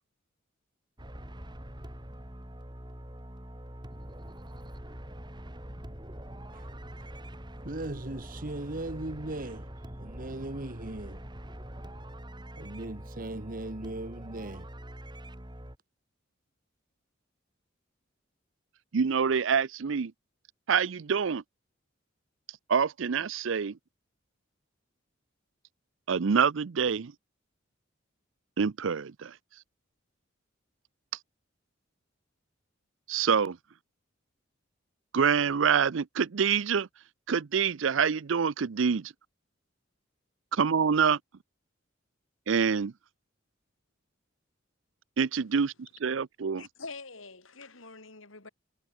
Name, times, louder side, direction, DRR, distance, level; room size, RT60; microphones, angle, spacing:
sound 1, 1.0-15.8, equal, 20° right, 5.0 m, -44 dB
voice 1, 7.0-11.3 12.5-14.7, right 2 dB, 45° right, 1.5 m, -39 dB
voice 2, 18.9-20.1 20.7-21.4 22.7-23.8 26.1-27.1 28.6-29.4 33.1-33.6 35.1-36.9 37.3-39.1 40.5-41.2 42.5-42.9 45.2-46.7, right 6 dB, 70° right, 0.5 m, -26 dB
voice 3, 46.6-48.5, left 4 dB, 80° left, 4.3 m, -45 dB
head